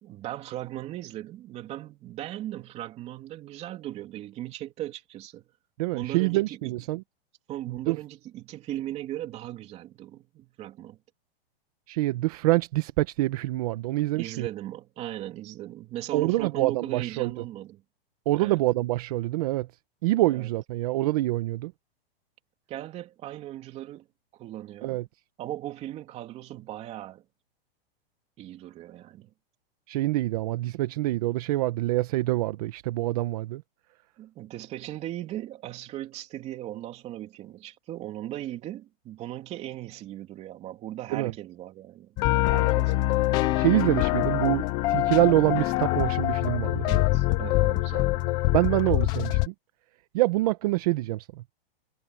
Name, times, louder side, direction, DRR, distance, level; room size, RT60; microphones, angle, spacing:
voice 1, 0.0-5.5 5.9-6.8 7.5-11.0 14.1-17.8 18.3-18.6 20.3-20.5 22.7-24.1 24.3-25.0 25.4-27.2 28.4-29.3 34.2-43.1 46.8-48.3, right 13 dB, 20° right, 3.1 m, -38 dB
voice 2, 5.8-7.0 7.9-8.0 11.9-14.5 16.1-17.3 18.3-19.7 20.0-21.7 24.8-25.0 29.9-33.6 41.1-41.3 43.5-46.9 48.5-49.5 50.1-51.3, right 18 dB, 40° right, 1.1 m, -25 dB
sound 1, 42.2-49.5, left 19 dB, 15° left, 0.4 m, -24 dB
hypercardioid pair, 165°, 31 cm